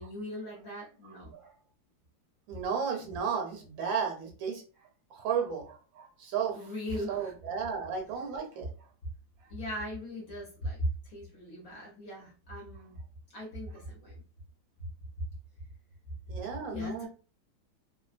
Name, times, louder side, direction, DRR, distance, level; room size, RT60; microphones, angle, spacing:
voice 1, 0.0-1.3 6.5-7.3 9.5-13.0 13.3-14.2 14.8-14.9 16.7-17.1, equal, 55° left, -3 dB, 1.1 m, -38 dB
voice 2, 2.5-4.6 5.1-6.5 7.1-8.7 16.3-17.1, right 6 dB, 75° right, 3 dB, 1.4 m, -33 dB
3.2 x 2.4 x 2.4 m, 0.36 s
omnidirectional pair, 2.2 m